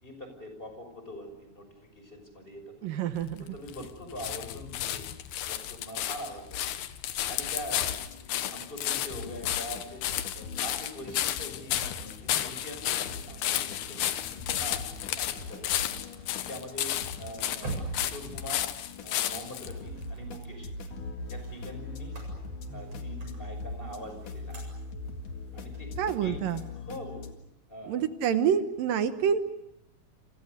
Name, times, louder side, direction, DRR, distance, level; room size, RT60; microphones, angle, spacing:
voice 1, 0.0-3.0 3.4-5.0 5.4-6.8 7.3-8.0 8.3-10.0 10.3-14.0 14.3-14.8 15.2-15.7 16.4-16.9 17.2-18.6 19.0-20.7 21.3-22.1 22.7-24.7 25.5-25.9 26.2-26.3 26.7-27.2 27.7-28.0, equal, 15° left, 6 dB, 5.8 m, -43 dB
voice 2, 2.8-3.5 26.0-26.6 27.9-29.4, right 8 dB, 70° right, 10 dB, 2.8 m, -27 dB
sound 1, 3.2-19.7 20.4-20.5, left 12 dB, 85° left, 3.2 m, -33 dB
sound 2, 7.7-27.3, left 3 dB, 60° left, 3.3 m, -42 dB
sound 3, 11.8-26.7, right 3 dB, 40° right, 8.5 m, -45 dB
29.0 x 28.0 x 6.7 m, 0.86 s
omnidirectional pair, 4.4 m